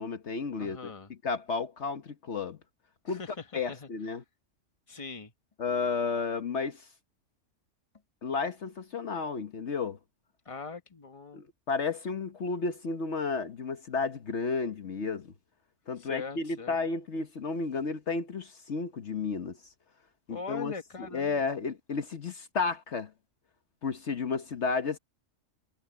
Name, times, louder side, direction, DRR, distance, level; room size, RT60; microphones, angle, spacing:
voice 1, 0.0-0.9 1.2-2.6 3.0-3.2 3.5-4.2 5.6-6.9 8.2-10.0 11.3-15.3 15.9-19.6 20.3-20.7 21.0-23.1 23.8-25.0, left 4 dB, 60° left, 1.4 m, -32 dB
voice 2, 0.6-1.1 3.1-3.9 4.9-5.3 10.4-11.4 16.0-16.8 20.3-21.5, left 5 dB, 25° left, 1.5 m, -41 dB
omnidirectional pair, 1.3 m